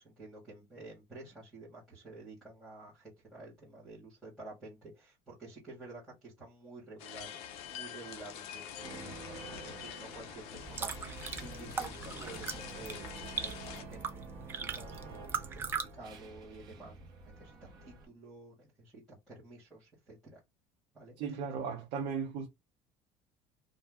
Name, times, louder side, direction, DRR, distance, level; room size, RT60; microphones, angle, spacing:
voice 1, 0.0-7.4 7.7-17.0 17.4-20.4 20.9-21.2, right 2 dB, ahead, 1.2 m, -51 dB
sound 1, 7.0-13.8, left 9 dB, 55° left, 0.5 m, -46 dB
sound 2, 8.8-18.1, right 3 dB, 35° right, 0.8 m, -50 dB
sound 3, 10.5-15.9, right 5 dB, 20° right, 0.3 m, -40 dB
voice 2, 21.2-22.5, right 6 dB, 65° right, 0.6 m, -36 dB
2.6 x 2.1 x 3.4 m
cardioid pair, 175°, 12 cm